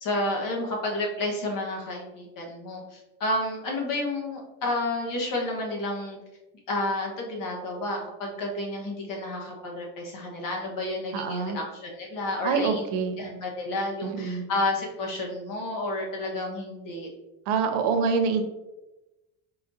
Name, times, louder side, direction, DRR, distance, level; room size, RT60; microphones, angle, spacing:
voice 1, 0.0-6.2 6.7-12.8 13.2-17.1, left 2 dB, 55° left, 0 dB, 1.3 m, -31 dB
voice 2, 11.1-11.6 12.4-13.2 14.0-14.4 17.5-18.4, right 5 dB, 90° right, 6 dB, 0.7 m, -26 dB
4.2 x 4.0 x 2.6 m, 1.0 s
cardioid pair, 125°, 40 cm